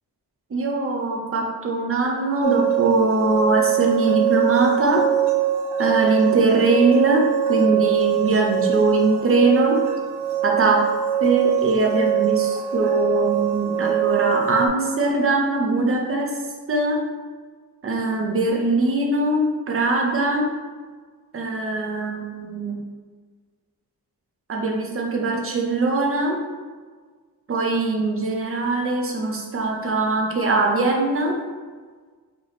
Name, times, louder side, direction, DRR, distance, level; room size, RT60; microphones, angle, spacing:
voice 1, 0.5-5.0 5.8-7.2 7.5-9.8 10.4-10.8 11.2-16.3 16.7-17.0 17.8-20.5 21.3-22.8 24.5-26.4 27.5-31.3, right 2 dB, 35° right, 0 dB, 0.6 m, -21 dB
sound 1, 2.4-14.7, right 11 dB, 80° right, 0.7 m, -23 dB
3.4 x 3.0 x 3.9 m, 1.5 s
wide cardioid pair, 160°, 40 cm